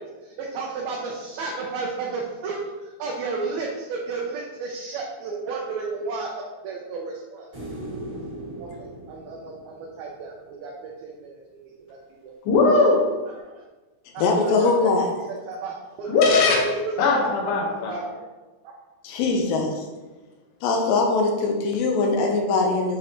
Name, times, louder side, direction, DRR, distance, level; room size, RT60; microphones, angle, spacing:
voice 1, 0.0-6.3 6.6-7.5 8.6-12.0 12.2-12.3 13.4-13.6 14.1-16.9 17.9-18.2 18.6-18.7, right 4 dB, 75° right, -2 dB, 2.4 m, -33 dB
sound 1, 7.5-10.8 13.4-13.5, right 1 dB, 30° right, 1.4 m, -38 dB
voice 2, 12.5-13.1 16.1-16.6 17.0-17.9, left 3 dB, 65° left, -3 dB, 2.9 m, -19 dB
voice 3, 14.2-15.1 19.0-19.8 20.6-23.0, left 3 dB, 85° left, 2 dB, 3.0 m, -22 dB
10.0 x 4.2 x 3.1 m, 1.2 s
omnidirectional pair, 5.0 m